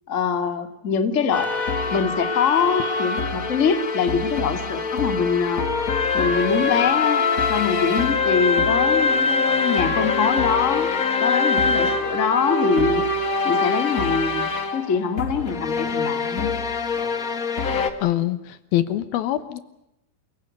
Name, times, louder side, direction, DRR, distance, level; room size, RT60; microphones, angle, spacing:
voice 1, 0.1-1.5 1.9-5.6 6.1-10.9 11.2-13.0 13.4-16.6, left 6 dB, 30° left, 8 dB, 1.5 m, -23 dB
sound 1, 1.3-17.9, left 4 dB, 55° left, 0.9 m, -23 dB
voice 2, 18.0-19.6, left 13 dB, 75° left, 14 dB, 2.9 m, -24 dB
28.0 x 17.5 x 9.3 m, 0.85 s
omnidirectional pair, 4.5 m